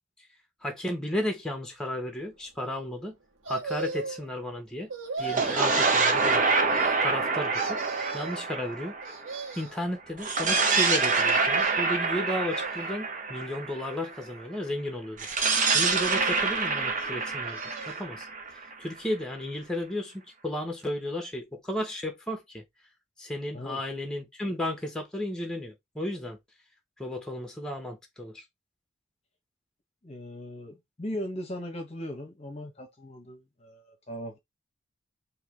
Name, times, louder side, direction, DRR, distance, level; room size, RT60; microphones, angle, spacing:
voice 1, 0.6-3.2 3.5-4.9 5.2-6.4 7.0-7.8 8.1-8.9 9.5-15.3 15.7-17.6 17.9-18.3 18.8-22.6 23.2-26.4 27.0-28.4, left 1 dB, 5° left, 1.3 m, -33 dB
sound 1, 3.4-4.3 4.9-5.7 6.4-7.2 7.5-8.4 9.0-9.8 11.0-12.0 12.5-13.2 13.8-14.6 15.6-16.4 17.2-18.1 18.5-18.6, right 4 dB, 70° right, 1.6 m, -37 dB
sound 2, 5.2-9.6 10.2-14.1 15.2-19.0, right 4 dB, 40° right, 1.1 m, -26 dB
voice 2, 30.0-34.4, equal, 30° left, 1.1 m, -38 dB
4.8 x 3.1 x 3.5 m
head